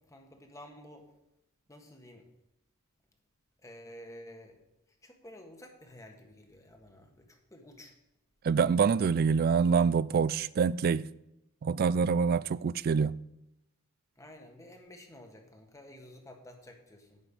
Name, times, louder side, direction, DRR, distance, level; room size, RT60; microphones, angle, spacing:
voice 1, 0.1-1.1 1.7-2.2 3.6-4.6 5.0-7.9 14.2-17.2, left 1 dB, 15° left, 1.5 m, -51 dB
voice 2, 8.4-11.1 11.6-13.2, right 5 dB, 45° right, 0.3 m, -26 dB
11.0 x 5.5 x 8.6 m
head